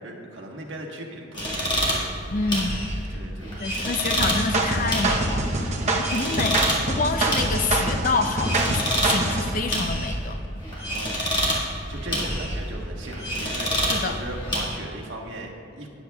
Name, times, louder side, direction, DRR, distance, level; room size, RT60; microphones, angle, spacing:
voice 1, 0.0-2.2 3.1-3.8 5.5-6.5 10.7-11.2 11.5-15.9, right 1 dB, 75° right, 0 dB, 1.4 m, -39 dB
sound 1, 1.3-14.6, equal, 25° left, 1.8 m, -28 dB
voice 2, 2.3-2.8 3.6-5.7 6.0-10.4 13.9-14.2, left 3 dB, 45° left, 7 dB, 0.5 m, -28 dB
sound 2, 4.2-9.5, right 2 dB, 35° right, 0.9 m, -25 dB
18.0 x 8.1 x 2.3 m, 2.6 s
head